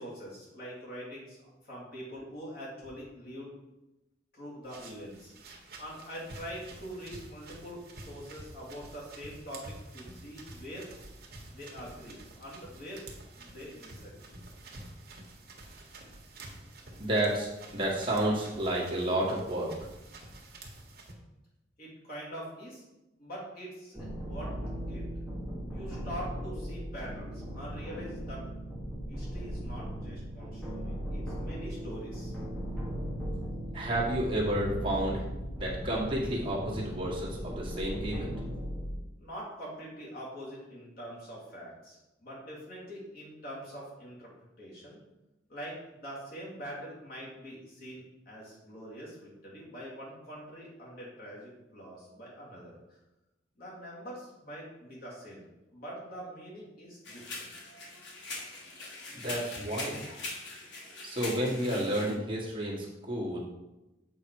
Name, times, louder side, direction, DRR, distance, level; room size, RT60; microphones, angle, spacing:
voice 1, 0.0-1.4 1.6-3.5 4.3-5.3 5.8-10.9 11.5-13.0 13.4-14.3 21.8-22.8 23.2-24.5 24.9-25.1 25.7-28.4 29.1-32.3 39.2-44.3 44.6-45.0 45.5-53.0 53.6-55.4 55.7-57.5, equal, 50° left, -6 dB, 3.0 m, -44 dB
sound 1, 4.6-21.1, right 2 dB, 55° right, 1.4 m, -49 dB
voice 2, 17.0-19.7 33.7-35.2 35.6-38.3 59.1-60.0 61.0-63.4, right 1 dB, 30° right, -5 dB, 1.7 m, -31 dB
sound 2, 23.9-38.9, equal, 5° left, 1.6 m, -38 dB
sound 3, 57.0-62.1, left 3 dB, 75° left, 1.6 m, -42 dB
7.6 x 4.9 x 4.8 m, 0.98 s
head